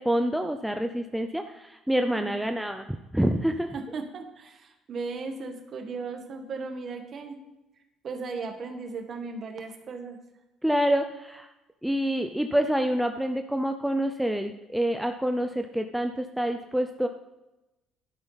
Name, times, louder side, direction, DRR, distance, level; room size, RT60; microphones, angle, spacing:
voice 1, 0.0-2.8 3.1-3.7 10.6-11.5 11.8-17.1, equal, ahead, 5 dB, 0.5 m, -27 dB
voice 2, 3.7-7.4 8.0-10.2, right 4 dB, 40° right, 5 dB, 1.5 m, -36 dB
11.5 x 9.7 x 4.0 m, 1.0 s
cardioid pair, 135°, 0 cm